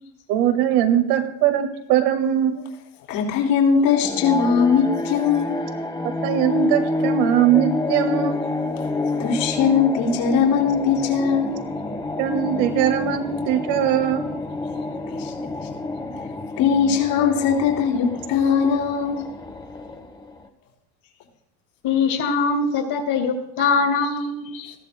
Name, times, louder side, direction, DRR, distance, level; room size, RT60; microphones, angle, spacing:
voice 1, 0.3-2.6 6.2-8.4 12.2-14.2, right 10 dB, 80° right, 7 dB, 1.9 m, -20 dB
voice 2, 3.1-5.6 9.2-11.6 15.1-15.3 16.6-19.3, left 6 dB, 70° left, 0 dB, 3.5 m, -20 dB
sound 1, 3.9-20.5, left 2 dB, 10° left, 1.0 m, -28 dB
voice 3, 21.8-24.7, left 4 dB, 50° left, 3 dB, 2.9 m, -22 dB
19.5 x 14.5 x 2.2 m, 0.80 s
supercardioid pair, 125°, 48 cm